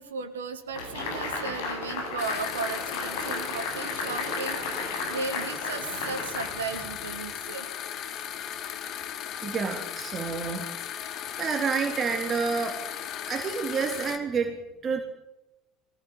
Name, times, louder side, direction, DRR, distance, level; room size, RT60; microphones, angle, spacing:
voice 1, 0.0-7.7, right 4 dB, 80° right, 8 dB, 3.2 m, -36 dB
sound 1, 0.8-7.2, left 3 dB, 70° left, 7.9 m, -34 dB
sound 2, 2.2-14.2, left 9 dB, 50° left, 2.8 m, -37 dB
voice 2, 9.4-10.6 11.0-12.8 13.3-15.0, right 5 dB, 35° right, 3 dB, 3.8 m, -29 dB
25.0 x 20.0 x 9.1 m, 0.95 s
figure-of-eight pair, 65°, 0 cm